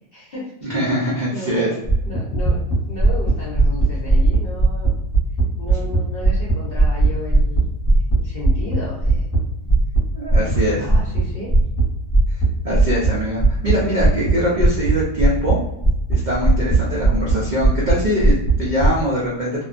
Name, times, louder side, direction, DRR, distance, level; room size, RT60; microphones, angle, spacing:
voice 1, 0.1-0.7 1.0-1.8 2.0-2.6 2.9-4.9 5.6-7.7 8.2-9.4 10.3-11.5, left 1 dB, 50° left, -5 dB, 0.7 m, -33 dB
voice 2, 0.6-1.7 10.2-10.8 12.6-15.6 16.1-19.6, equal, 70° right, -6 dB, 0.4 m, -22 dB
sound 1, 1.9-6.0 6.2-9.4 9.6-10.0 10.3-10.6 10.9-11.2 11.5-11.8 12.1-12.5 12.7-13.1 13.4-13.7 14.0-14.3 14.6-14.9 15.2-15.5 15.8-16.8 17.0-17.3 17.6-17.9 18.2-18.9, right 3 dB, 15° left, 0.8 m, -16 dB
2.6 x 2.2 x 2.4 m, 0.85 s
omnidirectional pair, 1.6 m